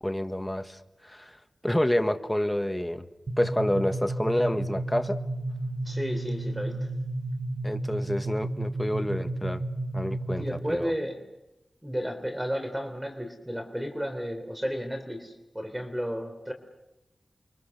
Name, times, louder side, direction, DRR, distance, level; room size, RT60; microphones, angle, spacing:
voice 1, 0.0-3.0 3.4-5.2 7.6-9.6 9.9-10.9, left 1 dB, 10° left, 8 dB, 1.5 m, -28 dB
sound 1, 3.3-10.8, right 1 dB, 55° right, 2.4 m, -32 dB
voice 2, 5.8-6.9 10.4-11.2 11.8-16.5, equal, 10° right, 6 dB, 3.5 m, -33 dB
29.5 x 24.0 x 6.7 m, 0.94 s
wide cardioid pair, 85°, 0 cm